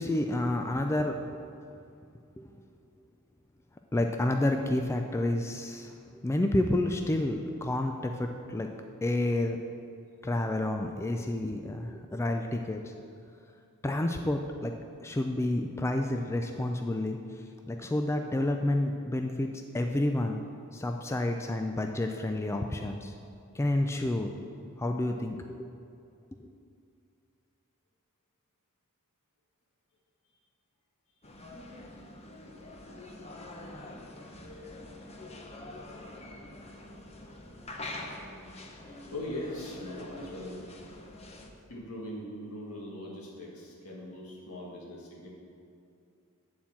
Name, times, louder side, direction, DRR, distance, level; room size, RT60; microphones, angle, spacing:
voice 1, 0.0-1.4 2.4-2.6 3.9-8.7 9.0-9.6 10.2-12.9 13.8-14.7 15.0-20.5 20.7-23.2 23.5-24.3 24.8-25.7 26.4-26.5, left 1 dB, 10° left, 4 dB, 0.3 m, -30 dB
sound 1, 31.2-41.5, left 1 dB, 30° left, 0.8 m, -45 dB
voice 2, 38.9-40.6 41.3-41.4 41.7-45.3, left 1 dB, 75° left, -3 dB, 1.9 m, -40 dB
9.5 x 4.4 x 7.1 m, 2.5 s
head